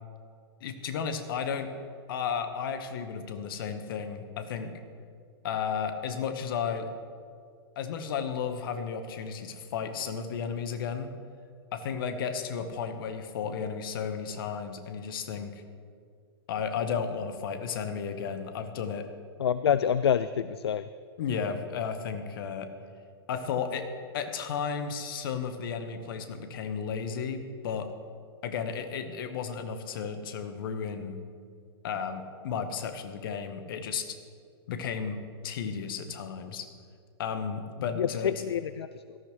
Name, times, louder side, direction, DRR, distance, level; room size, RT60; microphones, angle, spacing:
voice 1, 0.6-1.7 2.1-4.8 5.4-6.9 7.7-11.1 11.7-15.6 16.5-19.1 21.2-22.7 23.3-23.9 24.1-27.9 28.4-31.2 31.8-34.2 34.7-36.6 37.2-38.3, left 6 dB, 55° left, 8 dB, 1.3 m, -33 dB
voice 2, 19.4-20.9 38.0-39.2, left 8 dB, 75° left, 14 dB, 0.4 m, -27 dB
17.5 x 13.5 x 3.2 m, 2.2 s
figure-of-eight pair, 105°, 14 cm